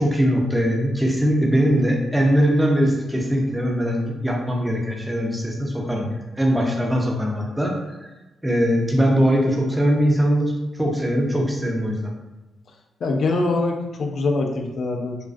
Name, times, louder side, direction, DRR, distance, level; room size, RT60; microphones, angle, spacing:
voice 1, 0.0-7.7 8.4-10.5 10.8-12.1, equal, 10° right, 0 dB, 0.5 m, -21 dB
voice 2, 13.0-15.2, left 3 dB, 60° left, 2 dB, 0.3 m, -23 dB
2.3 x 2.2 x 2.4 m, 1.1 s
cardioid pair, 70°, 0 cm